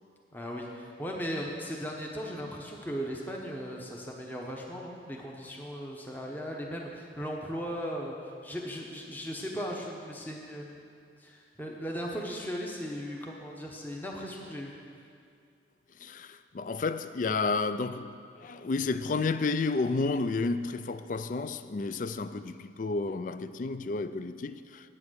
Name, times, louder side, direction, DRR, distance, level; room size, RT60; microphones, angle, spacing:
voice 1, 0.3-8.2 8.4-10.8 11.2-14.7, equal, 10° left, -1 dB, 0.9 m, -37 dB
voice 2, 16.0-24.9, left 3 dB, 45° left, 12 dB, 0.4 m, -31 dB
9.9 x 8.8 x 6.3 m, 2.4 s
head